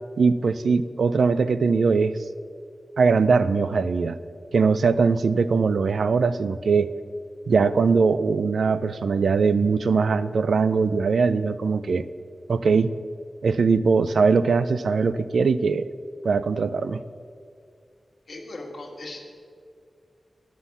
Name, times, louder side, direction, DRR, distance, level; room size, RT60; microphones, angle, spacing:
voice 1, 0.2-2.2 3.0-4.2 4.5-6.9 7.5-12.1 12.5-12.9 13.4-15.9 16.2-17.0, right 5 dB, 85° right, 14 dB, 0.3 m, -21 dB
voice 2, 18.3-19.3, left 2 dB, 60° left, 0 dB, 1.6 m, -38 dB
9.8 x 5.8 x 7.0 m, 2.2 s
wide cardioid pair, 110°, 0 cm